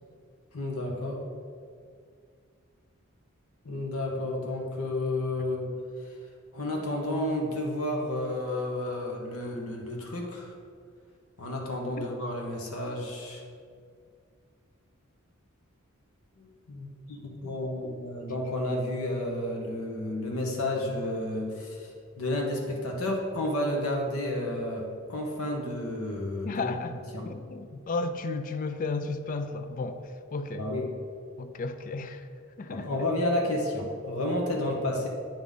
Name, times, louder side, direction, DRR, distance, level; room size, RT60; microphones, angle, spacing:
voice 1, 0.5-1.2 3.6-5.7 6.5-10.5 11.4-13.4 16.4-21.9 22.2-27.3 30.6-30.9 32.7-35.1, left 1 dB, 85° left, 1.1 m, -31 dB
voice 2, 26.4-27.0 27.2-30.7 31.4-32.3 32.6-33.0, left 3 dB, 40° left, 0.4 m, -33 dB
9.0 x 3.7 x 5.5 m
head